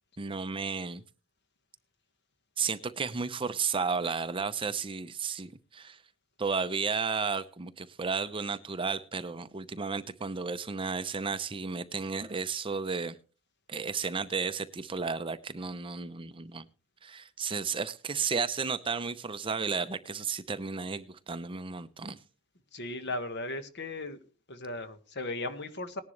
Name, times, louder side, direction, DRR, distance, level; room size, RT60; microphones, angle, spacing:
voice 1, 0.2-1.0 2.6-6.0 6.4-13.2 13.7-16.7 17.0-22.2, right 5 dB, 25° right, 0.6 m, -33 dB
voice 2, 22.7-24.2 24.5-26.0, left 2 dB, 50° left, 1.5 m, -36 dB
19.0 x 11.0 x 3.2 m
head